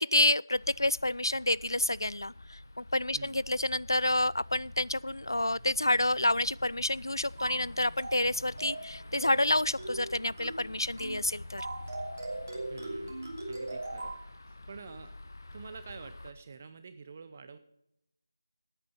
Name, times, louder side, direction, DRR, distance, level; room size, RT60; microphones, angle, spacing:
voice 1, 0.0-11.7, left 1 dB, 85° left, 22 dB, 0.3 m, -29 dB
sound 1, 0.5-16.3, left 2 dB, 55° left, 1.3 m, -48 dB
sound 2, 7.4-7.6 8.0-8.3 8.6-8.9 9.2-9.5 9.8-10.1 10.4-10.6 11.0-11.2 11.6-14.2, right 2 dB, 45° right, 2.8 m, -39 dB
voice 2, 12.7-13.1 13.5-15.2 15.5-17.6, right 5 dB, 20° right, 10 dB, 0.5 m, -48 dB
12.0 x 8.9 x 5.6 m, 0.81 s
figure-of-eight pair, 170°, 2 cm